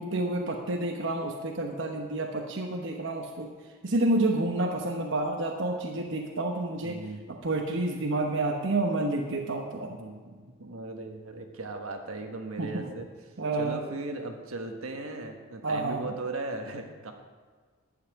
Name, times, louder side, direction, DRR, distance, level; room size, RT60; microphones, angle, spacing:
voice 1, 0.0-3.5 3.8-7.0 7.3-10.0 12.6-12.9 13.4-13.8 15.6-16.1, right 2 dB, 60° right, 2 dB, 1.0 m, -29 dB
voice 2, 6.8-7.2 10.0-13.1 13.6-17.1, right 2 dB, 85° right, 4 dB, 1.4 m, -38 dB
11.5 x 5.8 x 8.7 m, 1.5 s
head